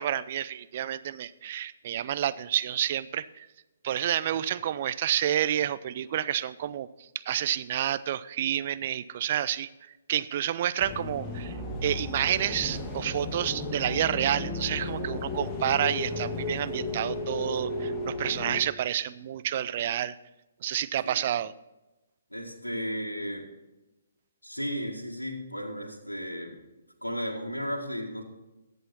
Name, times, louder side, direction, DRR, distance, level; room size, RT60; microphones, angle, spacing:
voice 1, 0.0-3.5 3.8-6.9 7.1-9.7 10.1-11.5 11.8-20.2 20.6-21.5, right 11 dB, 40° right, 15 dB, 0.5 m, -29 dB
sound 1, 10.8-18.6, left 2 dB, 15° left, 1.6 m, -34 dB
voice 2, 22.3-23.5 24.4-26.6 27.0-28.2, equal, 85° left, 0 dB, 1.9 m, -34 dB
14.0 x 8.2 x 4.2 m, 1.0 s
figure-of-eight pair, 130°, 0 cm